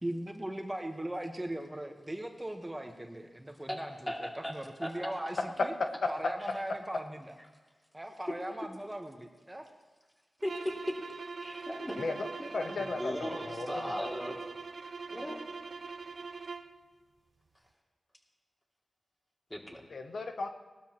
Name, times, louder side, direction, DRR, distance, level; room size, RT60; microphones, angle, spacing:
voice 1, 0.0-5.7 6.1-7.3 7.9-9.6, right 1 dB, 15° right, 4 dB, 1.3 m, -39 dB
voice 2, 4.1-4.5 4.8-5.1 10.4-11.0 11.4-12.0 12.4-14.4 15.1-15.3 19.5-19.8, equal, 15° left, -1 dB, 2.6 m, -37 dB
sound 1, 10.4-16.8, right 4 dB, 75° right, 0.8 m, -42 dB
voice 3, 12.0-12.3 12.5-13.7 19.9-20.5, left 3 dB, 75° left, 6 dB, 0.8 m, -36 dB
19.5 x 12.5 x 3.0 m, 1.4 s
cardioid pair, 60°, 0 cm